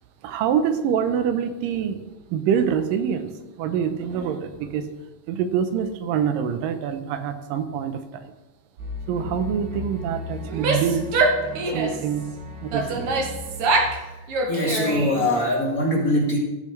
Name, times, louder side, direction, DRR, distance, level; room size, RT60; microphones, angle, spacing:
voice 1, 0.2-2.0 2.3-3.3 3.6-4.9 5.3-8.3 9.1-11.1 11.7-12.3 12.6-13.2, right 8 dB, 90° right, 8 dB, 2.4 m, -25 dB
sound 1, 8.8-14.5, left 2 dB, 35° right, 3.7 m, -36 dB
Female speech woman speaking / Yell, 10.4-12.1 12.7-14.0 14.3-15.3, right 3 dB, 65° right, 1.5 m, -24 dB
voice 2, 14.1-16.4, left 1 dB, 30° left, -3 dB, 2.0 m, -23 dB
15.5 x 7.1 x 3.2 m, 1.1 s
omnidirectional pair, 3.8 m